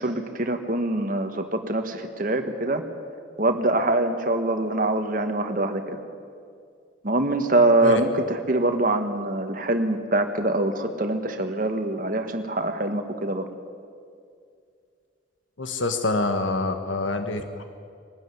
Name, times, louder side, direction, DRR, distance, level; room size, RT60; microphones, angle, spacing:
voice 1, 0.0-2.8 3.4-6.0 7.0-13.4, right 2 dB, 45° right, 6 dB, 1.4 m, -24 dB
voice 2, 15.6-17.6, left 2 dB, 85° left, 7 dB, 1.3 m, -26 dB
22.0 x 12.5 x 9.7 m, 2.3 s
head